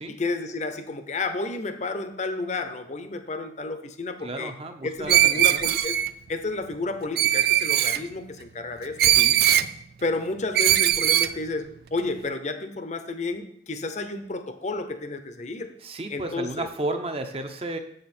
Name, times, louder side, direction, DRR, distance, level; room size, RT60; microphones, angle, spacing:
voice 1, 0.1-4.5 4.8-5.9 6.3-9.2 10.0-15.7 16.1-16.7, left 3 dB, 40° left, 9 dB, 0.7 m, -31 dB
voice 2, 4.2-5.2 5.5-5.7 9.1-9.4 15.8-17.8, right 2 dB, 35° right, 6 dB, 0.7 m, -32 dB
Screech, 5.1-6.1 7.2-8.0 9.0-9.7 10.5-11.3, right 12 dB, 60° right, 0.3 m, -20 dB
7.5 x 6.6 x 4.3 m, 0.71 s
head